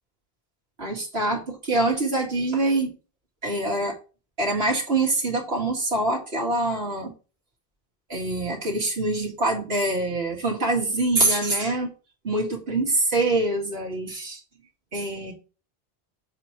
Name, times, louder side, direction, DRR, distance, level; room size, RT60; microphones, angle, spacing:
voice 1, 0.8-2.9 3.4-4.0 4.4-7.1 8.1-11.9 12.2-14.4 14.9-15.3, right 2 dB, 75° right, -2 dB, 2.5 m, -25 dB
7.5 x 3.1 x 5.9 m, 0.34 s
omnidirectional pair, 1.1 m